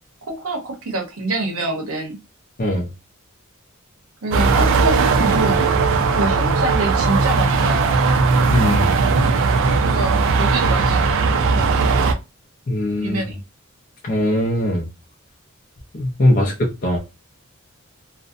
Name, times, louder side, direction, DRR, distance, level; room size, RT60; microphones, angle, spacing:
voice 1, 0.3-2.2 4.2-5.7 6.2-8.0 9.8-11.0 11.4-11.7 13.0-13.4 16.3-16.5, right 2 dB, 85° right, 0.8 m, -26 dB
sound 1, 4.3-12.1, right 4 dB, 65° right, 0.4 m, -18 dB
voice 2, 8.5-8.9 12.7-13.2 14.0-14.9 15.9-17.0, left 1 dB, 40° left, 0.5 m, -20 dB
2.6 x 2.0 x 2.5 m
head